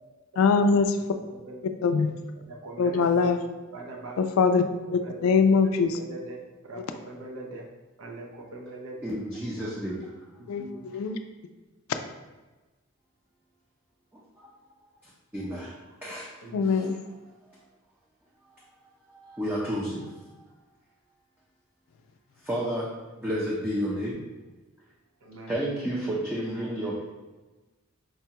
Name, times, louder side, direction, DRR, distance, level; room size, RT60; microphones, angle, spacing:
voice 1, 0.4-1.0 1.8-2.1 2.8-3.4 4.2-4.6 4.9-6.0 10.5-11.2 16.5-17.0, left 5 dB, 85° left, 8 dB, 0.3 m, -22 dB
voice 2, 2.5-3.1 3.7-4.2 5.0-5.4 6.0-7.7 8.0-8.9 10.6-10.8 16.4-16.6 25.2-25.5, right 2 dB, 85° right, 0 dB, 0.6 m, -41 dB
voice 3, 9.0-10.0 14.1-14.5 14.8-15.7 16.0-17.0 19.1-20.4 22.4-22.9 23.2-24.2 25.5-27.0, equal, 10° right, -6 dB, 0.5 m, -32 dB
4.7 x 2.2 x 2.8 m, 1.2 s
head